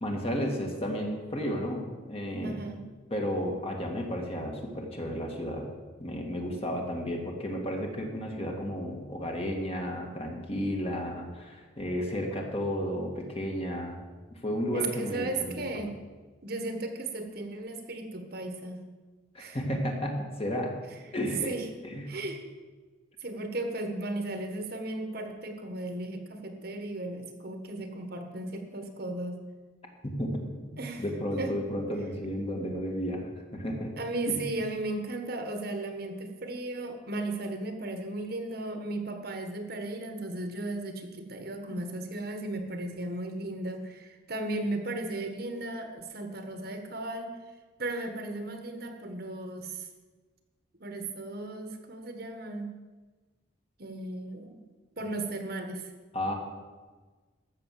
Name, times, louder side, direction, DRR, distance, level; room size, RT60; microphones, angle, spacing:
voice 1, 0.0-2.6 3.1-5.7 6.0-14.0 14.4-15.9 19.3-20.8 21.1-21.5 21.8-22.1 30.0-30.4 30.7-33.3 33.5-34.0 34.3-34.4 56.1-56.3, equal, 30° left, 1 dB, 1.9 m, -33 dB
voice 2, 2.4-2.8 14.7-15.9 16.4-18.8 19.4-19.6 20.9-21.1 21.4-21.7 22.1-22.4 23.2-29.4 30.8-31.0 31.4-31.6 34.0-47.3 47.8-49.9 50.8-52.7 53.8-54.6 55.0-55.9, right 2 dB, 55° right, 6 dB, 1.4 m, -35 dB
14.0 x 6.5 x 7.6 m, 1.3 s
head